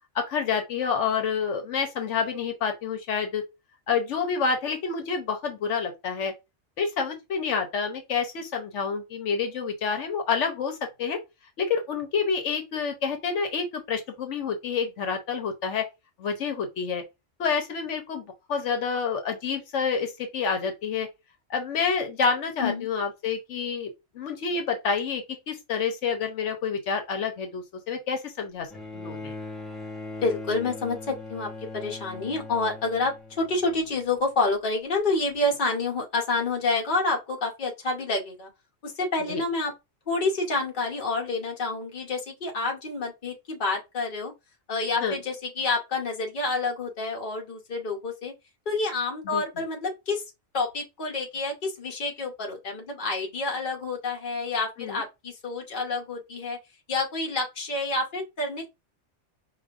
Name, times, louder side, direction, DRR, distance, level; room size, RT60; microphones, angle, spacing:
voice 1, 0.1-3.4 3.9-6.3 6.8-11.2 11.6-15.9 16.2-17.0 17.4-21.1 21.5-23.9 24.1-29.3 39.3-39.4 45.0-45.2 49.2-49.4 54.8-55.0, left 5 dB, 80° left, 1.1 m, -28 dB
Bowed string instrument, 28.7-34.2 35.3-35.4, left 2 dB, ahead, 1.0 m, -40 dB
voice 2, 30.2-31.5 31.7-38.5 38.8-39.7 40.1-44.3 44.7-48.3 48.7-50.2 50.5-56.6 56.9-58.7, left 3 dB, 45° left, 1.1 m, -28 dB
4.9 x 2.5 x 2.4 m
omnidirectional pair, 1.2 m